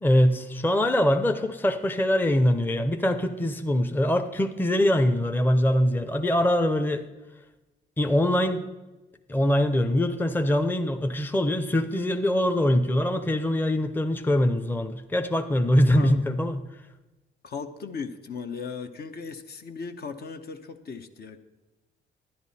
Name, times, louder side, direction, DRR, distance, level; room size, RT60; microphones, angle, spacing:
voice 1, 0.0-7.0 8.0-8.7 9.3-16.6, left 1 dB, 10° left, 8 dB, 0.7 m, -23 dB
voice 2, 17.4-21.4, left 5 dB, 55° left, 7 dB, 0.9 m, -37 dB
10.5 x 10.5 x 4.2 m, 1.1 s
cardioid pair, 75°, 20 cm